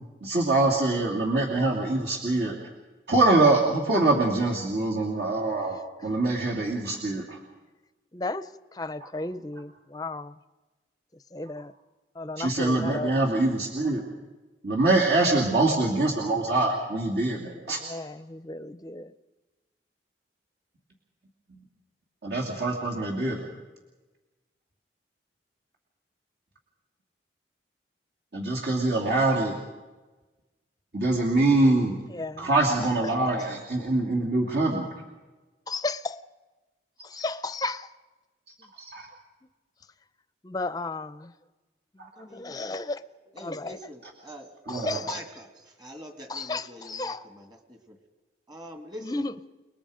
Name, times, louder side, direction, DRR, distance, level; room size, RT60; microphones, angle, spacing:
voice 1, 0.2-2.5 3.1-5.8 6.0-7.4 12.4-14.0 14.6-17.8 22.2-23.4 28.3-29.5 30.9-32.0 32.4-34.9 38.8-39.1 44.7-45.0, right 2 dB, 60° right, -2 dB, 2.9 m, -24 dB
voice 2, 8.1-8.5 8.7-10.3 11.3-11.7 12.2-13.2 17.8-19.1 32.1-32.5 32.8-33.2 35.7-36.2 37.0-37.9 40.4-41.3 42.2-43.0 43.4-43.8 44.7-45.2 46.3-47.2 49.0-49.3, left 2 dB, 20° left, 13 dB, 0.6 m, -34 dB
voice 3, 42.3-42.8 43.3-44.5 44.9-48.0 48.5-49.2, equal, 25° right, 5 dB, 2.2 m, -44 dB
29.5 x 20.5 x 5.1 m, 1.2 s
head